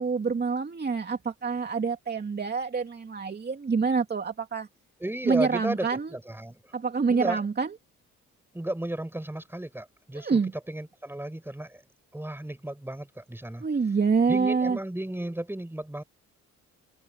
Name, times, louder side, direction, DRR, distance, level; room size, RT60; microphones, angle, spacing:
voice 1, 0.0-4.7 5.2-6.2 6.7-7.7 10.2-10.5 13.6-14.8, right 5 dB, 35° right, 2.7 m, -26 dB
voice 2, 5.0-6.7 7.1-7.4 8.5-11.8 12.1-13.7 14.3-16.0, right 1 dB, 5° right, 7.5 m, -34 dB
open air
cardioid pair, 90°, 30 cm